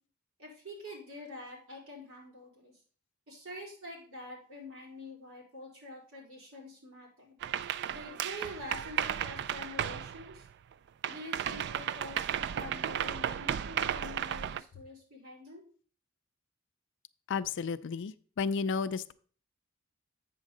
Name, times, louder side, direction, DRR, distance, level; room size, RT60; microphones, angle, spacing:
voice 1, 0.4-2.8 3.3-7.4 7.9-10.5 11.1-15.6, left 1 dB, 75° right, -3 dB, 3.7 m, -46 dB
sound 1, 7.4-10.7 11.0-14.6, right 9 dB, 55° right, 0.3 m, -34 dB
voice 2, 17.3-19.1, left 5 dB, 60° left, 13 dB, 0.4 m, -32 dB
8.1 x 3.8 x 6.5 m, 0.42 s
head